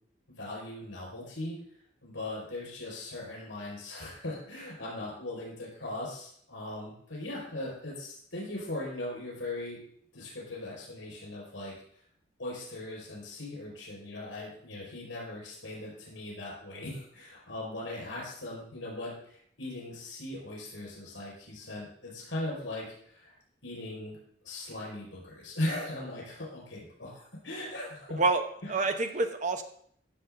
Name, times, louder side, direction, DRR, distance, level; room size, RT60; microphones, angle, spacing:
voice 1, 0.3-1.6 2.0-9.8 10.1-12.0 12.4-23.3 23.6-24.2 24.4-28.2 28.6-29.0, left 1 dB, 80° left, -3 dB, 5.4 m, -39 dB
voice 2, 28.2-29.6, right 3 dB, 40° right, 7 dB, 1.0 m, -28 dB
15.0 x 7.1 x 3.9 m, 0.64 s
head